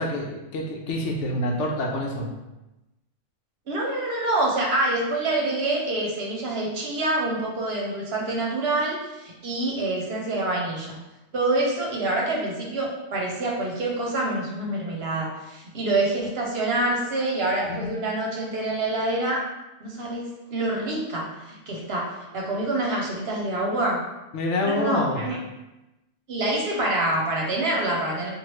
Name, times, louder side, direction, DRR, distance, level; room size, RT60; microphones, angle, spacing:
voice 1, 0.0-2.3 17.6-17.9 24.3-25.3, left 1 dB, 80° left, 0 dB, 0.9 m, -27 dB
voice 2, 3.7-11.0 11.3-19.4 19.8-24.0 24.7-25.4 26.3-28.3, right 2 dB, 60° right, -2 dB, 0.8 m, -26 dB
3.0 x 2.4 x 3.1 m, 0.98 s
omnidirectional pair, 1.3 m